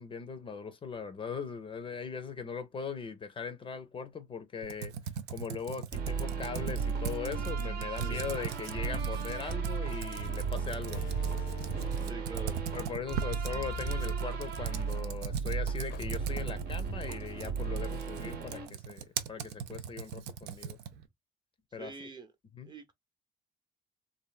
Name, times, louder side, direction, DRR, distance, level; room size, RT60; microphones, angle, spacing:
voice 1, 0.0-4.9 5.3-11.6 12.7-20.8 21.7-22.1 22.5-22.7, left 5 dB, 30° left, 0.5 m, -40 dB
Computer keyboard, 4.6-21.1, right 8 dB, 85° right, 0.5 m, -40 dB
sound 1, 5.9-18.7, right 5 dB, 70° right, 0.9 m, -35 dB
voice 2, 8.0-8.3 12.0-12.6 21.8-22.3 22.6-22.9, right 3 dB, 25° right, 0.7 m, -45 dB
Slam, 9.7-9.9 10.8-12.3 13.4-14.8 15.2-15.3 15.9-16.5, left 8 dB, 85° left, 0.5 m, -45 dB
3.1 x 2.5 x 2.2 m
cardioid pair, 110°, 17 cm